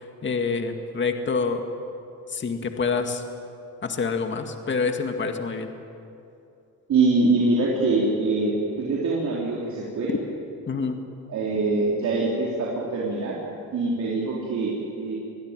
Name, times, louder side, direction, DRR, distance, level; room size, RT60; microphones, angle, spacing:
voice 1, 0.0-1.6 2.3-3.2 3.8-5.7 10.1-10.2 10.7-11.0, left 4 dB, 40° left, 5 dB, 2.1 m, -27 dB
voice 2, 6.9-10.1 11.3-13.4 13.7-15.1, right 3 dB, 65° right, -4 dB, 4.0 m, -24 dB
24.0 x 16.5 x 9.1 m, 2.6 s
cardioid pair, 90°, 30 cm